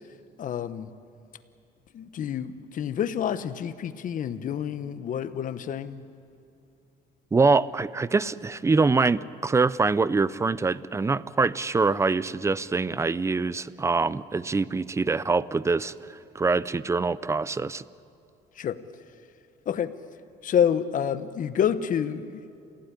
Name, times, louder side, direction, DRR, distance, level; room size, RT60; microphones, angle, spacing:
voice 1, 0.4-0.9 1.9-6.0 18.6-18.8 19.7-19.9 20.4-22.4, left 8 dB, 50° left, 12 dB, 1.2 m, -28 dB
voice 2, 7.3-17.8, right 4 dB, 15° right, 18 dB, 0.6 m, -24 dB
28.0 x 16.0 x 9.9 m, 2.5 s
cardioid pair, 110°, 17 cm